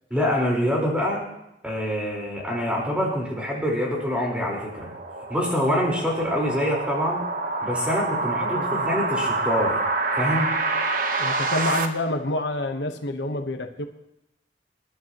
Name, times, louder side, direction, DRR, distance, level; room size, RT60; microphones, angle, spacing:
voice 1, 0.1-1.2 1.6-4.9 5.3-7.3 7.6-9.8 10.2-10.5, equal, 5° right, -3 dB, 4.3 m, -25 dB
sound 1, 3.2-11.8, right 3 dB, 50° right, 1.2 m, -27 dB
voice 2, 8.4-8.9 11.2-13.9, left 1 dB, 85° left, 6 dB, 1.1 m, -28 dB
27.0 x 11.5 x 3.0 m, 0.87 s
head